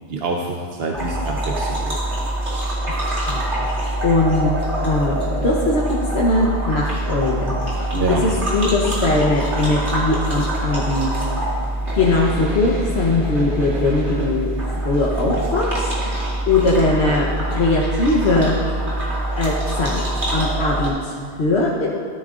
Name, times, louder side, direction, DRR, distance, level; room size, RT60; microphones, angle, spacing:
voice 1, 0.1-2.0 7.9-8.2, right 3 dB, 65° right, 0 dB, 1.0 m, -26 dB
sound 1, 0.9-20.9, right 1 dB, 85° right, 2.7 m, -24 dB
voice 2, 3.1-4.5 4.8-11.2 11.9-18.6 19.4-20.0 20.3-21.9, left 2 dB, 70° left, -4 dB, 1.3 m, -21 dB
14.0 x 12.5 x 2.5 m, 2.1 s
omnidirectional pair, 1.1 m